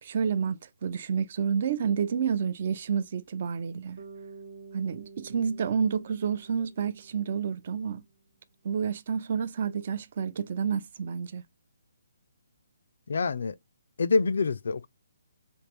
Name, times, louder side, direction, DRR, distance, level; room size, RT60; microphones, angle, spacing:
voice 1, 0.0-4.0 4.7-8.0 8.6-11.4, right 7 dB, 45° right, 0.4 m, -29 dB
Bass guitar, 4.0-8.2, right 4 dB, 80° right, 0.9 m, -50 dB
voice 2, 13.1-13.6 14.0-14.9, left 4 dB, 65° left, 0.4 m, -26 dB
3.1 x 2.4 x 3.4 m
hypercardioid pair, 165°, 0 cm